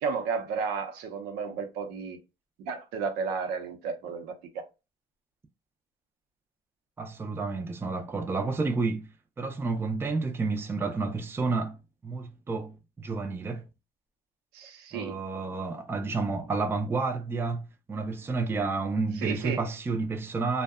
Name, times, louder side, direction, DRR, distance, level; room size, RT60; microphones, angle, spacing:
voice 1, 0.0-2.2 2.6-4.7 14.5-15.2 19.2-19.6, right 5 dB, 85° right, 0.6 m, -33 dB
voice 2, 7.0-9.0 9.4-11.8 12.0-13.6 14.9-20.6, right 3 dB, 15° right, 0.4 m, -30 dB
2.6 x 2.1 x 2.3 m
cardioid pair, 120°, 16 cm